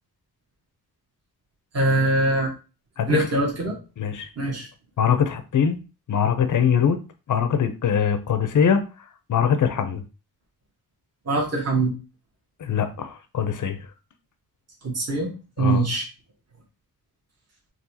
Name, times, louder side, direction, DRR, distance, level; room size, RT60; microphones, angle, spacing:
voice 1, 1.7-2.5 3.1-3.8 4.4-4.7 11.3-11.9 14.8-15.3 15.6-16.1, right 2 dB, 40° right, 1.3 m, -22 dB
voice 2, 4.0-4.3 5.0-5.8 6.1-7.0 7.3-8.8 9.3-10.0 12.6-13.8 15.6-15.8, left 7 dB, 55° left, 0.6 m, -22 dB
3.8 x 2.4 x 2.8 m
cardioid pair, 75°, 38 cm